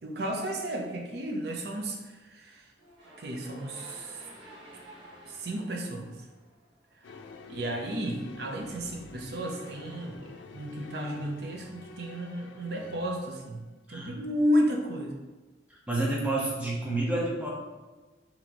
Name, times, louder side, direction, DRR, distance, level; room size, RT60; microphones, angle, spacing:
voice 1, 0.0-2.7 3.2-4.3 5.3-6.1 7.0-7.2 7.5-10.3 10.5-13.6 13.9-15.2, equal, 60° right, 1 dB, 0.6 m, -32 dB
sound 1, 2.8-7.0, right 1 dB, 75° right, 1.1 m, -51 dB
sound 2, 7.0-13.6, left 3 dB, 75° left, 0.3 m, -48 dB
voice 2, 15.9-17.5, right 2 dB, 5° right, -4 dB, 0.6 m, -29 dB
4.2 x 2.9 x 2.9 m, 1.3 s
head